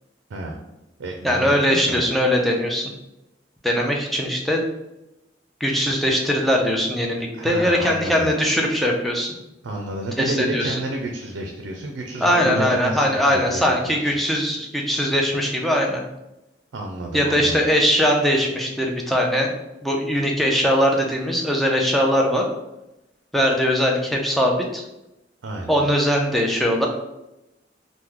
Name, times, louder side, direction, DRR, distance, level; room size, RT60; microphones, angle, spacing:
voice 1, 0.3-0.6 1.0-2.1 7.4-8.3 9.6-13.7 14.0-14.1 16.7-17.6 25.4-25.9, right 2 dB, 85° right, 1 dB, 0.4 m, -30 dB
voice 2, 1.2-2.9 3.6-4.6 5.6-9.3 10.2-10.8 12.2-16.0 17.1-19.5 19.8-22.5 23.3-24.8 25.7-26.9, equal, ahead, 0 dB, 0.4 m, -21 dB
2.9 x 2.1 x 3.6 m, 0.92 s
head